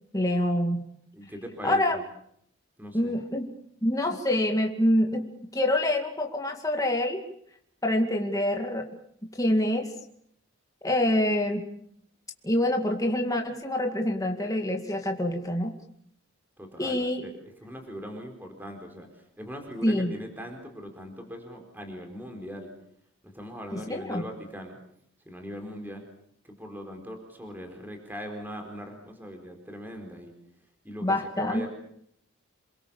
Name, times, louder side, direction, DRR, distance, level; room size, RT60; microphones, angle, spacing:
voice 1, 0.1-0.8 1.6-2.0 2.9-3.5 3.8-7.2 7.8-8.8 9.4-9.9 10.8-11.7 12.4-15.7 16.8-17.2 19.8-20.1 23.7-24.2 31.0-31.6, left 1 dB, 15° left, 3 dB, 2.2 m, -26 dB
voice 2, 1.1-2.0 2.8-3.1 16.6-19.1 19.4-22.7 23.2-24.8 25.3-26.0 26.4-30.3 30.8-31.7, equal, 10° right, 3 dB, 4.3 m, -40 dB
28.0 x 23.0 x 7.1 m, 0.69 s
head